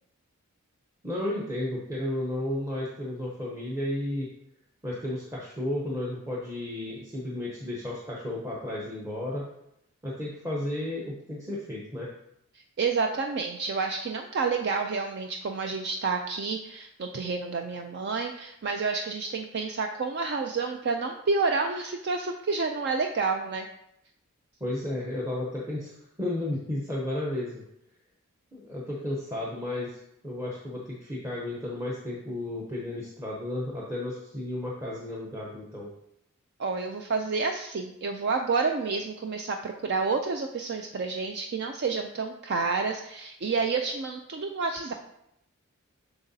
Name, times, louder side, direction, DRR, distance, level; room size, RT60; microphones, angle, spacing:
voice 1, 1.0-4.3 4.8-9.4 10.0-12.1 24.6-27.6 28.5-35.9, left 1 dB, 10° right, -4 dB, 0.8 m, -33 dB
voice 2, 12.8-23.7 36.6-44.9, right 4 dB, 50° right, 4 dB, 0.4 m, -29 dB
7.6 x 5.9 x 2.7 m, 0.79 s
head